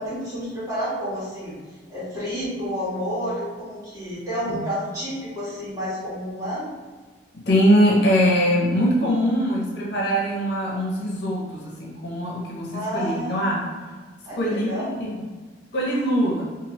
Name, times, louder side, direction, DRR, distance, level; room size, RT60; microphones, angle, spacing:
voice 1, 0.0-1.5 1.9-6.7 12.7-13.7 14.3-15.0, equal, 20° right, -12 dB, 1.4 m, -30 dB
voice 2, 7.5-13.8 14.3-15.2 15.7-16.4, equal, 60° left, -4 dB, 0.6 m, -22 dB
2.9 x 2.5 x 2.8 m, 1.4 s
head